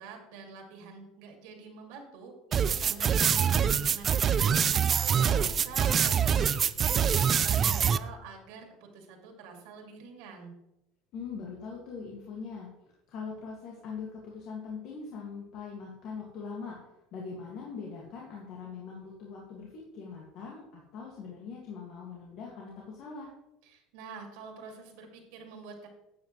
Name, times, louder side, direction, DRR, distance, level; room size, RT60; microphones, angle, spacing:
voice 1, 0.0-6.5 6.8-10.5 23.6-25.9, right 5 dB, 75° right, 3 dB, 2.4 m, -46 dB
sound 1, 2.5-8.0, right 8 dB, 30° right, 0.3 m, -25 dB
voice 2, 11.1-12.7 13.1-16.8 17.1-23.3, left 5 dB, 50° left, -3 dB, 2.0 m, -41 dB
12.0 x 8.3 x 3.2 m, 0.89 s
cardioid pair, 150°, 0 cm